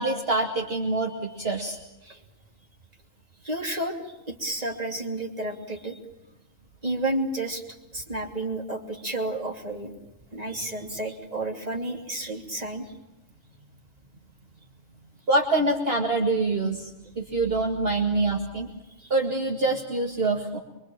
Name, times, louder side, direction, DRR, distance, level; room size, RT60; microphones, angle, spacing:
voice 1, 0.0-1.8 15.3-18.7 19.1-20.6, right 2 dB, 45° right, 0 dB, 2.4 m, -25 dB
voice 2, 3.4-6.0 6.8-9.9 10.3-12.9 19.0-19.1, right 2 dB, 30° right, 2 dB, 3.2 m, -31 dB
24.5 x 24.5 x 7.4 m, 0.95 s
omnidirectional pair, 1.4 m